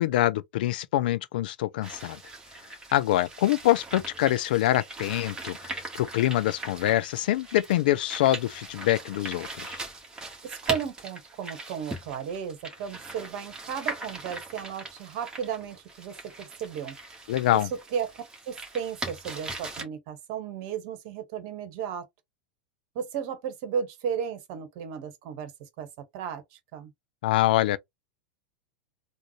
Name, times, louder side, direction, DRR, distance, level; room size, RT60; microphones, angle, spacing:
voice 1, 0.0-2.2 2.9-9.8 17.3-17.7 27.2-27.8, left 14 dB, 65° left, 0.3 m, -25 dB
sound 1, 1.8-19.8, right 2 dB, 15° right, 1.5 m, -40 dB
voice 2, 10.4-17.0 17.5-22.1 22.9-25.5 25.8-25.9 26.1-26.9, right 8 dB, 55° right, 1.1 m, -34 dB
3.7 x 2.2 x 3.1 m
hypercardioid pair, 95°, 5 cm